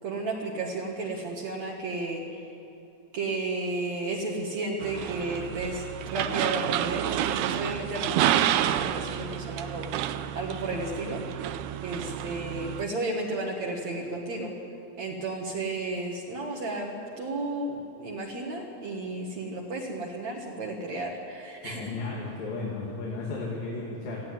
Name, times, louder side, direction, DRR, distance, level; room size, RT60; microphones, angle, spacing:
voice 1, 0.0-2.5 3.1-9.9 10.3-11.5 11.8-14.5 15.0-21.9, right 2 dB, 60° right, -2 dB, 2.7 m, -33 dB
sound 1, 4.8-12.9, right 11 dB, 75° right, 1.9 m, -29 dB
voice 2, 21.6-24.3, left 3 dB, 85° left, -3 dB, 4.2 m, -34 dB
19.5 x 14.5 x 9.5 m, 2.9 s
omnidirectional pair, 3.9 m